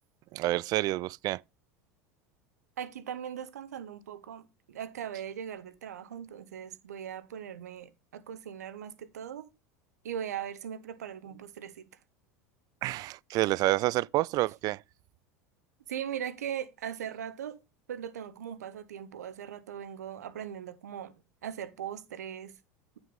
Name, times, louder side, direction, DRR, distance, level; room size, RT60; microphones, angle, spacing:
voice 1, 0.3-1.4 12.8-14.8, right 17 dB, 45° right, 0.3 m, -28 dB
voice 2, 2.8-9.5 10.0-11.9 15.9-17.6 17.9-21.1 21.4-22.6, right 9 dB, 80° right, 1.0 m, -39 dB
9.3 x 6.1 x 3.5 m
hypercardioid pair, 85°, 9 cm